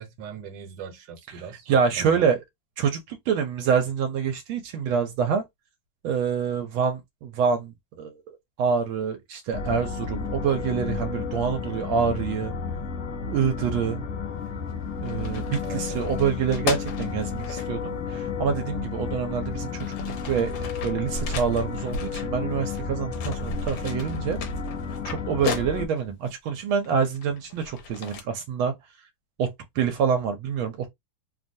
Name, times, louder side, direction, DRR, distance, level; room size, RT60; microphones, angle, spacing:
voice 1, 0.0-1.7 2.0-2.3 4.8-4.9 15.6-16.0, right 6 dB, 65° right, 1.4 m, -40 dB
voice 2, 1.7-2.4 2.8-5.4 6.0-12.5 13.2-14.0 15.0-19.9 20.2-24.4 25.0-28.7 29.4-29.5 29.8-30.9, right 7 dB, 85° right, 1.4 m, -26 dB
sound 1, 9.5-25.9, left 5 dB, 55° left, 0.8 m, -32 dB
sound 2, 14.5-14.7 15.0-17.7 18.8-18.9 19.5-22.8 23.1-26.1 26.7-28.2, left 5 dB, 75° left, 1.4 m, -35 dB
3.3 x 2.2 x 2.6 m
omnidirectional pair, 2.2 m